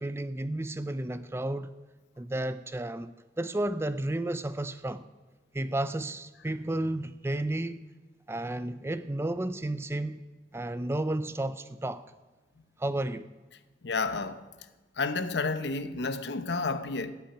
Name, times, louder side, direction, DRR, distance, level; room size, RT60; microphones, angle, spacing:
voice 1, 0.0-1.7 2.2-3.1 3.4-5.0 5.5-7.8 8.3-10.2 10.5-12.0 12.8-13.3, right 1 dB, 15° right, 0.4 m, -32 dB
voice 2, 13.8-14.4 15.0-17.1, left 3 dB, 70° left, 0.8 m, -30 dB
15.0 x 5.7 x 9.8 m
head